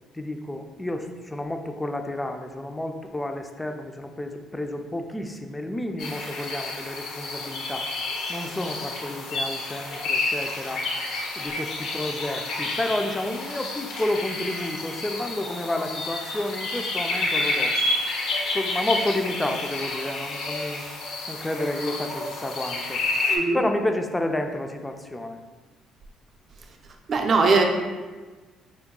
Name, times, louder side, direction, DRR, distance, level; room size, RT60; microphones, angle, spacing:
voice 1, 0.1-7.9 8.3-10.8 11.4-17.7 18.5-20.8 21.3-23.0 23.5-25.4, left 1 dB, 10° left, 5 dB, 0.3 m, -30 dB
sound 1, 6.0-23.4, left 2 dB, 75° left, 0.6 m, -30 dB
voice 2, 23.3-23.6 27.1-27.6, right 4 dB, 45° right, 3 dB, 0.5 m, -20 dB
3.8 x 2.2 x 3.6 m, 1.3 s
cardioid pair, 95°, 0 cm